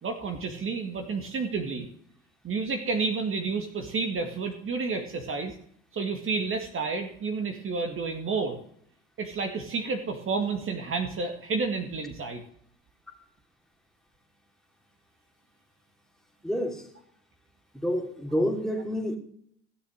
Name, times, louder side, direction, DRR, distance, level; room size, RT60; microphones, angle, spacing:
voice 1, 0.0-1.9 2.4-5.6 5.9-8.6 9.2-12.4, right 4 dB, 40° right, 5 dB, 2.1 m, -30 dB
voice 2, 16.4-16.9 17.7-19.2, equal, ahead, 2 dB, 2.9 m, -28 dB
16.0 x 7.1 x 6.5 m, 0.65 s
supercardioid pair, 80°, 32 cm